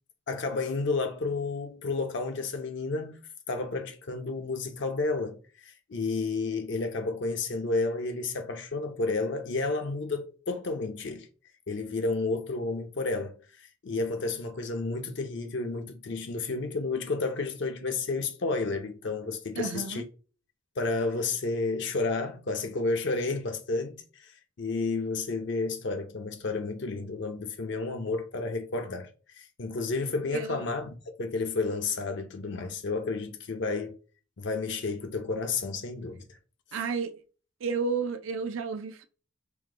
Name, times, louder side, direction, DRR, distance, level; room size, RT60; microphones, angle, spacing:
voice 1, 0.3-3.2 3.5-11.3 11.7-13.4 13.8-20.0 20.8-24.3 24.6-34.0 34.4-36.4, left 3 dB, 65° left, 0.6 m, -31 dB
voice 2, 19.6-20.0 30.3-30.6 36.7-37.2 37.6-39.0, right 5 dB, 85° right, 0.4 m, -31 dB
4.9 x 2.1 x 3.7 m
head